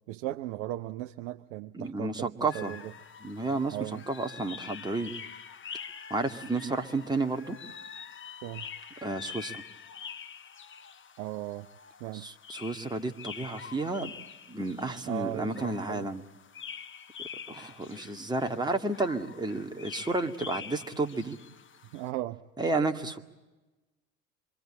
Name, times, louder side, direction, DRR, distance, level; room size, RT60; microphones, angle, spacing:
voice 1, 0.1-2.9 3.7-4.0 8.4-8.7 11.2-11.7 12.0-12.3 15.0-16.1 21.9-22.4, right 15 dB, 65° right, 0.8 m, -37 dB
voice 2, 1.7-2.8 3.2-3.8 4.1-5.1 6.1-7.6 9.0-9.6 12.2-14.2 14.5-16.2 17.5-21.4 22.6-23.2, right 2 dB, 10° right, 2.0 m, -31 dB
sound 1, 2.5-22.1, left 7 dB, 30° left, 1.3 m, -46 dB
26.0 x 23.5 x 8.8 m
hypercardioid pair, 65°, 39 cm